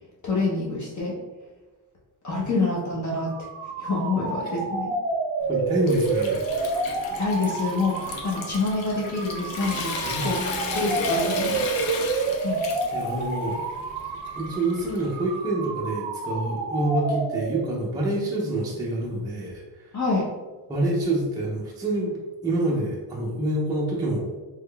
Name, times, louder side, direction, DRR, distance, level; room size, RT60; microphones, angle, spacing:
voice 1, 0.2-1.2 2.2-3.5 3.8-4.9 7.2-12.0 12.4-12.6 19.9-20.3, left 3 dB, 40° left, -4 dB, 0.8 m, -27 dB
sound 1, 3.2-17.9, right 3 dB, 55° right, 0.5 m, -29 dB
Water tap faucet / Sink (filling or washing) / Trickle dribble, 5.4-15.3, left 5 dB, 80° left, 0.7 m, -36 dB
voice 2, 5.5-6.6 10.1-10.9 11.9-12.1 12.9-13.6 14.4-20.0 20.7-24.3, right 2 dB, 10° right, -5 dB, 0.4 m, -27 dB
3.5 x 3.2 x 2.2 m, 1.3 s
cardioid pair, 155°, 45 cm